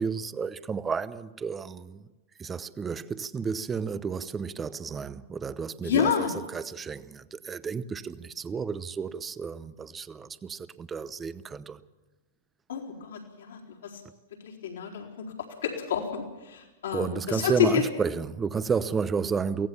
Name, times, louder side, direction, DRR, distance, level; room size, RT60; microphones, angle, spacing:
voice 1, 0.0-2.0 2.4-6.1 6.5-11.8 16.9-19.7, right 5 dB, 20° right, 0.8 m, -32 dB
voice 2, 5.8-6.3 12.7-14.0 14.4-17.8, left 8 dB, 75° left, 4.2 m, -29 dB
23.5 x 17.0 x 7.1 m
hypercardioid pair, 110°, 0 cm